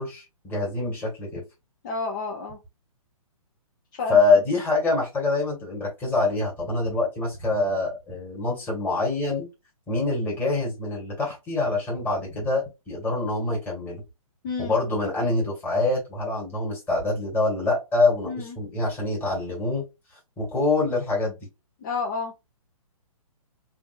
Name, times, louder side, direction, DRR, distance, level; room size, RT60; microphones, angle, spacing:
voice 1, 0.0-1.4 4.1-9.5 9.9-14.0 14.6-19.8 20.4-21.4, left 3 dB, 10° left, -3 dB, 1.7 m, -25 dB
voice 2, 1.8-2.6 3.9-4.2 14.4-14.8 18.2-18.6 21.8-22.3, left 4 dB, 30° left, 0 dB, 0.7 m, -30 dB
3.5 x 2.5 x 2.4 m, 0.24 s
hypercardioid pair, 155°, 19 cm